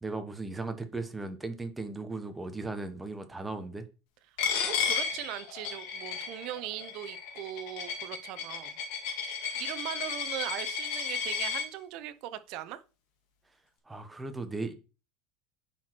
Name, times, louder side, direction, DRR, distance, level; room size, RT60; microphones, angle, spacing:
voice 1, 0.0-3.9 9.5-9.6 13.9-14.7, right 3 dB, 5° right, 0.9 m, -37 dB
Coin (dropping), 4.4-11.6, left 6 dB, 65° left, 2.2 m, -33 dB
voice 2, 4.7-8.8 9.6-12.8, right 13 dB, 50° right, 0.7 m, -39 dB
10.0 x 4.5 x 4.5 m
cardioid pair, 170°, 0 cm